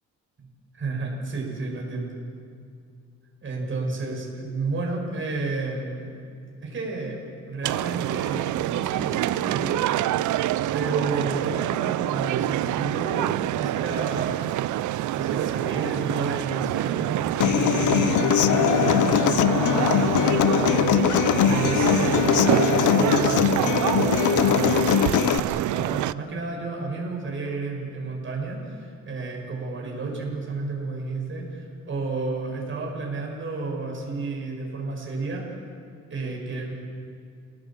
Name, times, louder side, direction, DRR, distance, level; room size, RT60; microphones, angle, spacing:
voice 1, 0.8-2.2 3.4-6.1 6.6-7.2 7.5-10.4 10.7-13.3 13.6-14.5 15.1-35.4 36.1-36.7, right 3 dB, 40° right, -1 dB, 6.9 m, -31 dB
sound 1, 7.6-26.1, right 14 dB, 75° right, 0.6 m, -26 dB
Human voice / Acoustic guitar, 17.4-25.4, left 12 dB, 75° left, 0.8 m, -21 dB
29.5 x 17.5 x 7.6 m, 2.3 s
cardioid pair, 90°, 30 cm